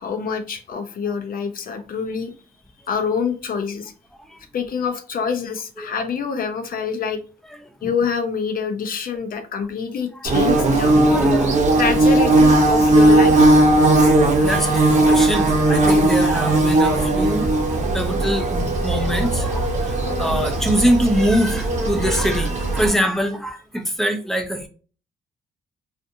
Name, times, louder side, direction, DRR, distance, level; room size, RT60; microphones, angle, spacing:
voice 1, 0.0-2.3 2.9-3.9 4.5-7.2 7.8-11.0 11.8-13.5, left 6 dB, 50° left, 0.6 m, -26 dB
voice 2, 7.5-7.9 10.3-10.4 10.9-11.8 14.0-17.5 17.9-24.7, equal, ahead, 0.5 m, -24 dB
Bird / Buzz, 10.2-22.9, right 2 dB, 40° right, 0.8 m, -17 dB
2.5 x 2.4 x 2.6 m
cardioid pair, 95°, 19 cm